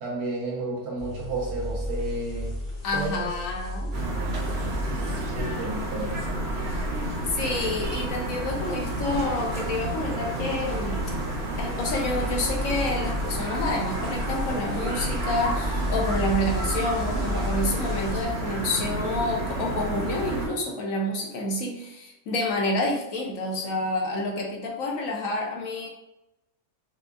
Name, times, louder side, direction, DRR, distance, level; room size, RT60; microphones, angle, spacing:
voice 1, 0.0-2.5 2.9-3.3 4.4-4.5 4.9-6.3, right 2 dB, 85° right, -4 dB, 1.6 m, -32 dB
sound 1, 1.0-18.2, left 1 dB, 45° left, 1.0 m, -34 dB
voice 2, 2.8-3.9 7.3-11.0 11.6-25.9, left 2 dB, 65° left, 0 dB, 1.1 m, -28 dB
sound 2, 3.9-20.5, right 2 dB, 50° right, 1.0 m, -31 dB
5.0 x 2.3 x 2.5 m, 0.89 s
omnidirectional pair, 1.6 m